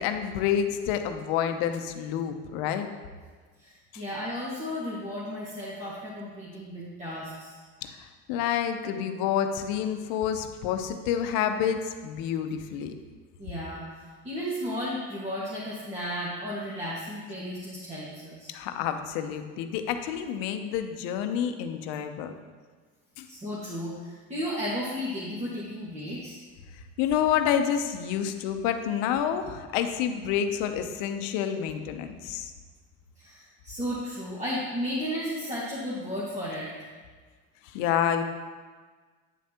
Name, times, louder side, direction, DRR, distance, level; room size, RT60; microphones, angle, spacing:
voice 1, 0.0-2.8 3.9-4.0 7.8-12.9 18.5-22.3 23.2-23.3 27.0-32.5 37.7-38.2, left 9 dB, 75° left, 7 dB, 0.8 m, -28 dB
voice 2, 3.6-7.6 13.4-18.5 23.3-26.4 33.2-36.7, equal, 20° right, -8 dB, 1.8 m, -34 dB
9.3 x 7.2 x 2.9 m, 1.5 s
supercardioid pair, 95°, 35 cm